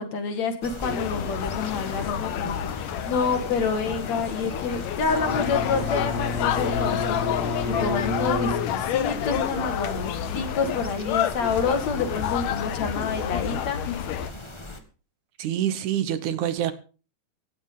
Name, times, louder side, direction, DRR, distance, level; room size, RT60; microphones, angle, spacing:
voice 1, 0.0-13.8, left 4 dB, 60° left, 7 dB, 3.0 m, -28 dB
sound 1, 0.6-14.8, left 1 dB, 20° left, 0.7 m, -40 dB
sound 2, 0.8-14.3, left 10 dB, 85° left, 2.6 m, -29 dB
Bowed string instrument, 5.1-9.3, left 2 dB, 45° right, 4.7 m, -32 dB
voice 2, 15.4-16.7, right 11 dB, 70° right, 13 dB, 2.4 m, -26 dB
17.0 x 14.0 x 3.8 m, 0.35 s
omnidirectional pair, 3.7 m